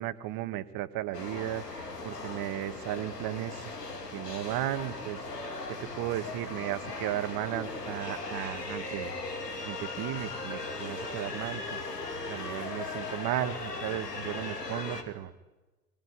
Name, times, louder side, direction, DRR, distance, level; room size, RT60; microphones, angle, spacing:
voice 1, 0.0-3.8 4.1-5.3 5.7-9.1 9.6-11.8 12.3-15.3, right 14 dB, 45° right, 12 dB, 1.7 m, -35 dB
sound 1, 1.1-15.0, left 3 dB, 90° left, 2.9 m, -38 dB
23.0 x 19.0 x 9.9 m, 1.2 s
figure-of-eight pair, 80°, 46 cm